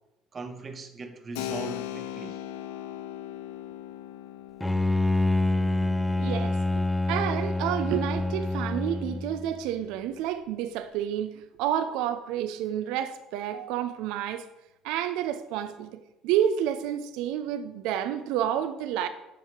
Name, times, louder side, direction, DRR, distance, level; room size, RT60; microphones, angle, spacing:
voice 1, 0.3-2.4, right 3 dB, 35° right, 1.1 m, -39 dB
Keyboard (musical), 1.3-9.7, left 12 dB, 80° left, 0.4 m, -41 dB
Bowed string instrument, 4.6-9.6, left 2 dB, 10° left, 0.5 m, -26 dB
voice 2, 6.2-14.5 14.8-19.1, right 10 dB, 70° right, 0.5 m, -30 dB
7.2 x 5.7 x 4.4 m
hypercardioid pair, 70°, 0 cm